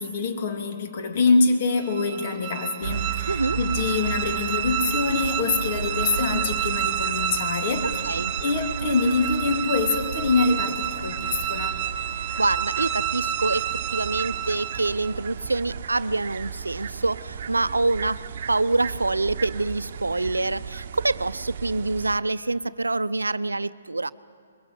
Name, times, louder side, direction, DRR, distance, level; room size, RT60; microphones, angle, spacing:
voice 1, 0.0-7.9 8.4-11.8, left 4 dB, 45° left, 4 dB, 3.0 m, -25 dB
sound 1, 1.8-15.1, right 10 dB, 25° right, 1.2 m, -30 dB
sound 2, 2.8-22.2, right 7 dB, 50° right, 1.0 m, -35 dB
voice 2, 3.3-3.6 8.0-8.3 12.1-13.7 13.9-24.1, right 2 dB, 90° right, 16 dB, 0.6 m, -26 dB
23.0 x 21.5 x 7.9 m, 2.3 s
figure-of-eight pair, 135°, 0 cm